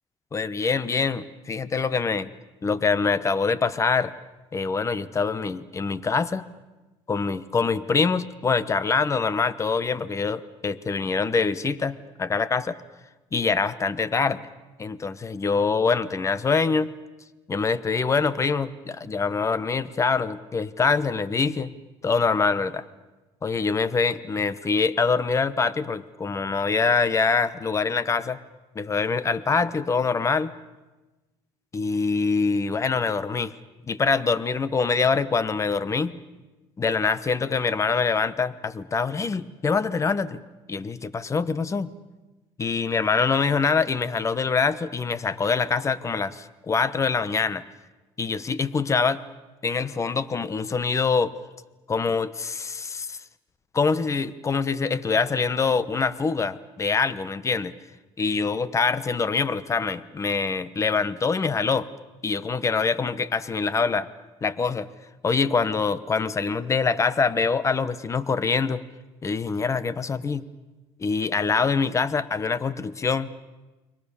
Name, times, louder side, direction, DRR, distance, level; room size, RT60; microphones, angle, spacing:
voice 1, 0.3-2.3 2.6-4.1 4.5-6.5 7.1-12.8 13.3-14.5 14.8-16.9 17.5-21.7 22.0-22.8 23.4-28.4 28.7-30.5 31.7-33.5 33.9-36.1 36.8-40.4 40.7-41.9 42.6-47.6 48.2-49.2 49.6-51.3 51.9-53.2 53.7-57.7 58.2-61.9 62.2-64.1 64.4-64.9 65.2-68.8 69.2-70.5 71.0-73.4, left 5 dB, 25° left, 16 dB, 1.1 m, -24 dB
29.5 x 23.0 x 7.1 m, 1.1 s
cardioid pair, 110°, 11 cm